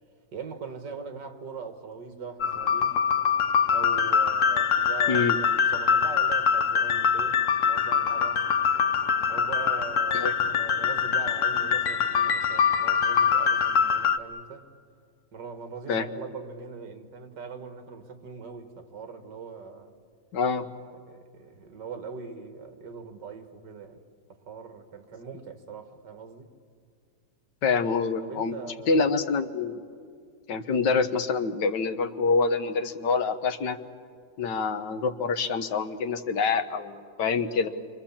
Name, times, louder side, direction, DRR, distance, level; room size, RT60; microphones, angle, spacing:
voice 1, 0.3-3.0 3.7-5.3 5.7-8.4 9.3-14.6 15.3-19.9 21.1-24.0 24.5-26.5 28.2-29.0, right 5 dB, 70° right, 2.3 m, -41 dB
sound 1, 2.4-14.2, left 6 dB, 55° left, 1.0 m, -24 dB
voice 2, 20.3-20.7 27.6-28.6 28.9-29.8 30.5-33.8 34.4-37.7, left 4 dB, 75° left, 1.8 m, -26 dB
28.5 x 24.5 x 7.3 m
omnidirectional pair, 1.9 m